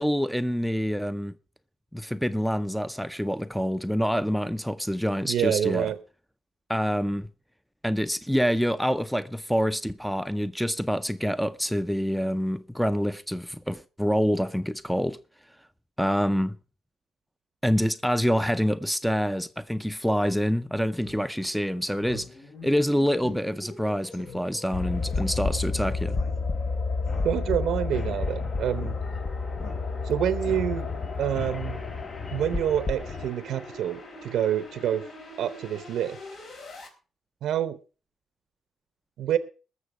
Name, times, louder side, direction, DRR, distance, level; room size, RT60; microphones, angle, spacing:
voice 1, 0.0-1.3 1.9-5.9 6.7-7.3 7.8-15.2 16.0-16.6 17.6-22.3 22.6-26.2, equal, ahead, 0.5 m, -26 dB
voice 2, 5.2-6.0 27.2-29.0 30.0-30.9 31.2-31.8 32.3-35.0 35.4-36.2 37.4-37.8 39.2-39.4, right 10 dB, 85° right, 0.7 m, -27 dB
Speech synthesizer, 21.0-21.2 21.6-21.7 22.0-22.3 22.6-22.7 23.2-23.4 23.7-23.8 24.1-24.4 25.1-25.4 26.1-26.7 27.0-27.6 28.0-28.2 28.8-28.9 29.6-30.1 30.4-30.9, left 4 dB, 85° left, 3.8 m, -44 dB
sound 1, 22.1-36.9, left 2 dB, 70° left, 4.2 m, -44 dB
sound 2, 24.7-33.3, left 4 dB, 40° left, 0.9 m, -30 dB
20.5 x 6.9 x 4.8 m
cardioid pair, 100°, 0 cm